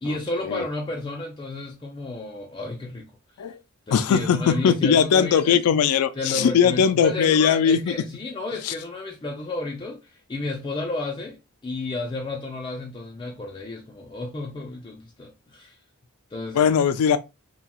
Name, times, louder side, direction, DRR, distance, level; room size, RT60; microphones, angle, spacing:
voice 1, 0.0-3.1 3.9-5.6 6.2-15.8 16.3-16.7, left 2 dB, 20° left, 0.4 m, -32 dB
voice 2, 3.9-7.9 8.6-8.7 16.5-17.2, left 7 dB, 90° left, 0.3 m, -20 dB
2.8 x 2.2 x 2.9 m
head